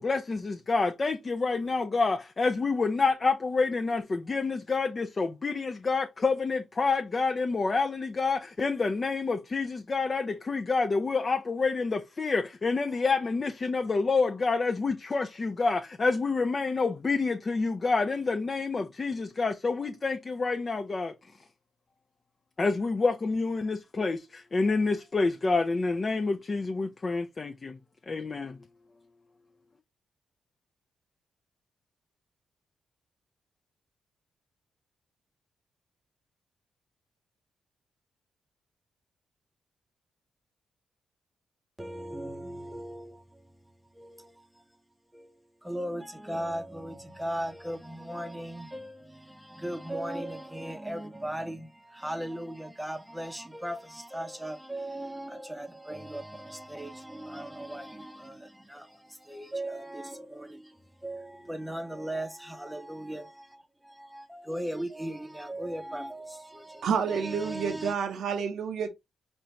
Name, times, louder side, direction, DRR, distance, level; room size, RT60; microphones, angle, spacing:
voice 1, 0.0-21.1 22.6-27.8 28.1-28.6, left 4 dB, 40° left, 0.5 m, -28 dB
voice 2, 41.8-43.6 43.9-44.6 45.1-67.9, right 1 dB, 5° right, 0.7 m, -38 dB
voice 3, 66.8-68.9, right 6 dB, 75° right, 0.7 m, -29 dB
4.4 x 2.6 x 3.1 m
cardioid pair, 70°, 0 cm